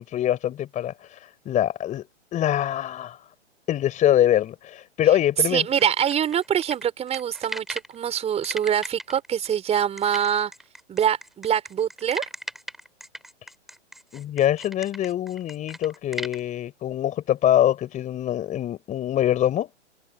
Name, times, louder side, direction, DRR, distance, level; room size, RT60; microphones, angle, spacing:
voice 1, 0.0-2.1 2.3-3.2 3.7-5.6 14.1-19.7, left 11 dB, 20° left, 4.5 m, -24 dB
voice 2, 5.5-10.5 10.9-12.2, right 9 dB, 15° right, 5.1 m, -24 dB
sound 1, 5.7-8.0 8.4-16.4, equal, ahead, 3.4 m, -37 dB
hypercardioid pair, 130°, 36 cm